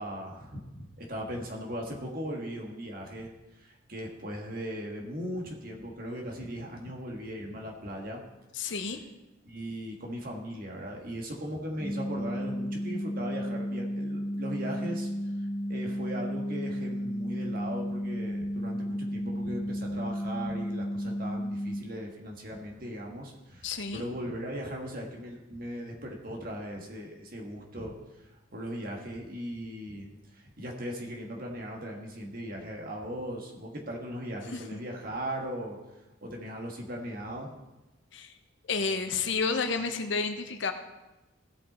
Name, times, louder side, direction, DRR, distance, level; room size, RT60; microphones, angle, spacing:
voice 1, 0.0-8.2 9.4-15.1 15.4-35.8 36.2-37.5, equal, 45° right, 0 dB, 1.6 m, -38 dB
voice 2, 8.5-9.0 23.6-24.0 34.5-34.6 38.1-38.3 38.7-40.7, left 4 dB, 60° left, 7 dB, 0.8 m, -30 dB
sound 1, 11.8-21.8, equal, 45° left, 2.9 m, -33 dB
15.5 x 5.5 x 4.2 m, 1.0 s
head